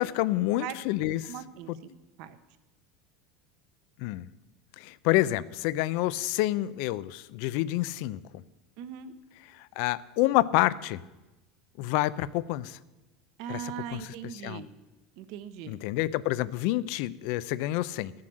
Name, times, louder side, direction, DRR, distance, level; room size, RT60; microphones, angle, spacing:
voice 1, 0.0-1.3 1.7-1.8 4.0-4.3 4.8-8.4 9.6-11.0 11.8-12.8 13.5-14.7 15.6-18.1, left 16 dB, 60° left, 17 dB, 0.5 m, -28 dB
voice 2, 1.3-1.7 2.2-2.4 8.8-9.1 13.4-14.7 15.2-15.8, right 9 dB, 55° right, 11 dB, 1.0 m, -39 dB
13.0 x 7.5 x 7.7 m, 1.1 s
supercardioid pair, 155°, 0 cm